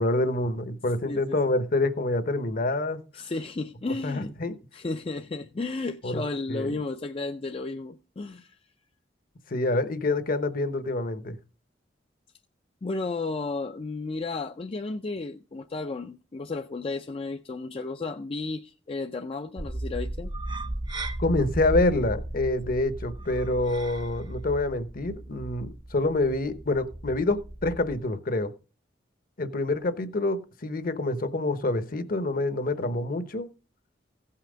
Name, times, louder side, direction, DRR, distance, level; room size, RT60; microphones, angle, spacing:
voice 1, 0.0-3.0 4.0-4.6 6.0-6.2 6.5-6.8 9.5-11.4 21.2-28.5 29.4-33.5, left 2 dB, 50° left, 0.9 m, -27 dB
voice 2, 1.0-1.4 3.1-4.3 4.7-8.6 12.8-20.3, left 3 dB, 30° left, 0.4 m, -33 dB
sound 1, 19.6-28.0, right 1 dB, 25° right, 0.7 m, -35 dB
16.0 x 5.7 x 5.0 m
head